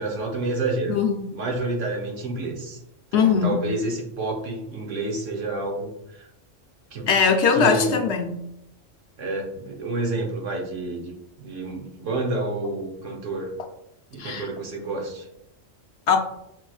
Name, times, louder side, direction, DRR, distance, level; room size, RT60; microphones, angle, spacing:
voice 1, 0.0-1.0 1.3-2.8 3.1-6.3 6.9-7.1 7.5-7.9 9.2-13.5 14.1-15.3, right 2 dB, 75° right, 1 dB, 1.3 m, -29 dB
voice 2, 0.9-1.2 3.1-3.6 7.1-8.3 14.2-14.5 16.1-16.2, left 6 dB, 65° left, 3 dB, 0.9 m, -20 dB
7.0 x 3.0 x 2.3 m, 0.81 s
omnidirectional pair, 1.3 m